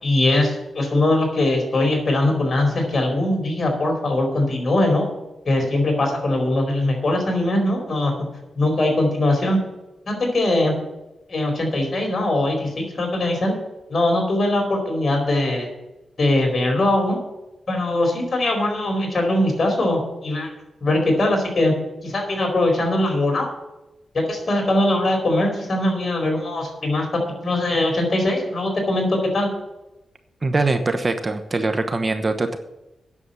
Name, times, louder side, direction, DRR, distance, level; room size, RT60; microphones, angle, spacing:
voice 1, 0.0-5.1 5.4-8.1 8.5-9.6 10.1-10.7 11.3-13.6 13.9-15.7 16.2-17.2 17.7-20.5 20.8-21.7 22.0-23.5 24.1-29.5, left 1 dB, 45° left, 2 dB, 4.4 m, -21 dB
voice 2, 30.4-32.6, right 3 dB, 35° right, 8 dB, 1.0 m, -22 dB
9.7 x 7.2 x 8.3 m, 0.97 s
cardioid pair, 70°, 0 cm